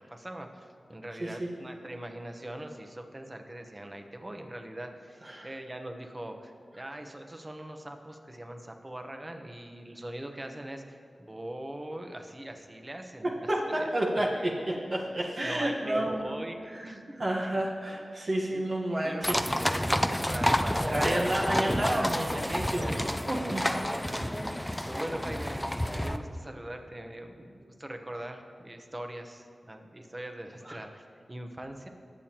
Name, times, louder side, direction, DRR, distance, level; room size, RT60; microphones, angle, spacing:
voice 1, 0.0-13.3 13.8-14.9 15.2-17.6 17.9-18.6 19.0-22.3 24.1-25.6 25.9-31.9, right 1 dB, 25° right, 4 dB, 1.1 m, -42 dB
voice 2, 13.5-14.5 14.9-16.3 16.7-19.4 20.8-23.6 30.6-30.8, right 1 dB, 55° right, -2 dB, 1.4 m, -30 dB
sound 1, 19.2-26.2, equal, 10° left, 0.5 m, -29 dB
20.0 x 7.1 x 3.0 m, 2.4 s
cardioid pair, 45°, 0 cm